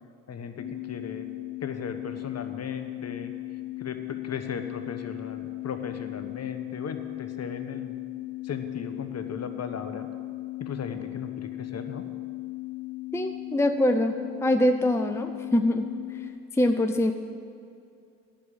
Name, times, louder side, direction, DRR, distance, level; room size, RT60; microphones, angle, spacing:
voice 1, 0.3-1.3 1.6-3.3 3.8-8.0 8.4-10.1 10.6-12.1, left 6 dB, 40° left, 8 dB, 1.1 m, -37 dB
sound 1, 0.6-16.3, left 19 dB, 85° left, 1.7 m, -37 dB
voice 2, 13.1-14.2 14.4-15.9 16.5-17.1, left 1 dB, 5° left, 6 dB, 0.6 m, -23 dB
10.0 x 6.2 x 8.7 m, 2.5 s
hypercardioid pair, 50°, 38 cm